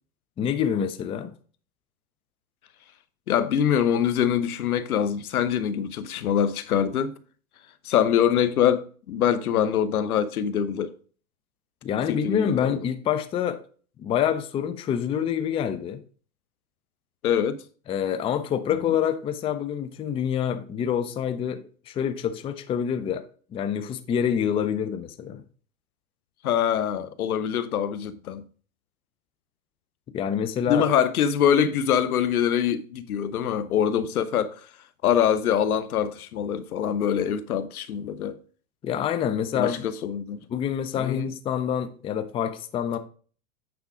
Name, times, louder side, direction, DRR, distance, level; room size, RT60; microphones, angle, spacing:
voice 1, 0.4-1.3 11.8-13.6 14.0-16.0 17.9-23.3 23.5-25.4 30.1-30.9 38.8-39.8 40.5-43.0, left 8 dB, 15° left, 0.4 m, -26 dB
voice 2, 3.3-7.2 7.8-10.9 12.1-12.5 17.2-17.6 18.9-19.0 26.4-28.4 30.7-34.6 35.0-38.4 39.5-40.4 41.0-41.3, left 9 dB, 90° left, 0.9 m, -24 dB
8.8 x 3.6 x 4.8 m
hypercardioid pair, 120°, 42 cm